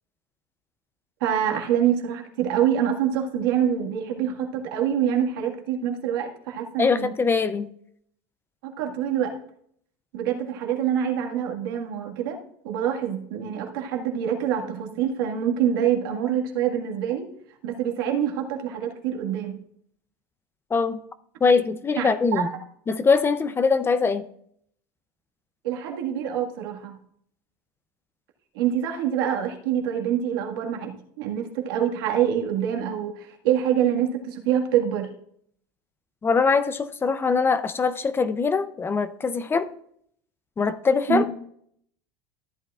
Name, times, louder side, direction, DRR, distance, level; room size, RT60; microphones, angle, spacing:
voice 1, 1.2-7.1 8.6-9.3 10.1-12.4 12.6-17.3 17.6-19.6 22.0-22.5 25.6-27.0 28.6-35.1 41.1-41.2, right 9 dB, 85° right, 2 dB, 1.8 m, -25 dB
voice 2, 6.8-7.7 20.7-21.0 21.4-22.5 22.9-24.3 36.2-39.7 40.6-41.3, left 5 dB, 20° left, 12 dB, 0.5 m, -22 dB
14.0 x 8.7 x 2.4 m, 0.66 s
supercardioid pair, 125°, 12 cm